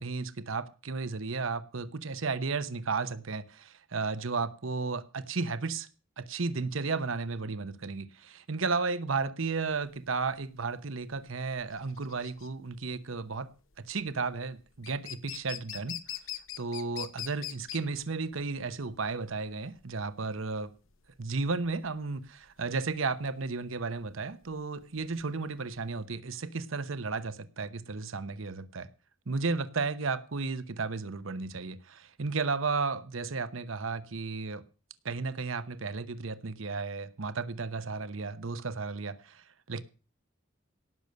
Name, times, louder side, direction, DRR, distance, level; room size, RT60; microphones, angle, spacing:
voice 1, 0.0-5.9 6.2-13.5 13.9-16.0 16.6-20.7 21.2-28.9 29.3-34.6 35.0-39.8, right 4 dB, 80° right, 0.9 m, -33 dB
sound 1, 9.7-26.0, left 12 dB, 80° left, 1.1 m, -44 dB
17.5 x 6.8 x 6.4 m
head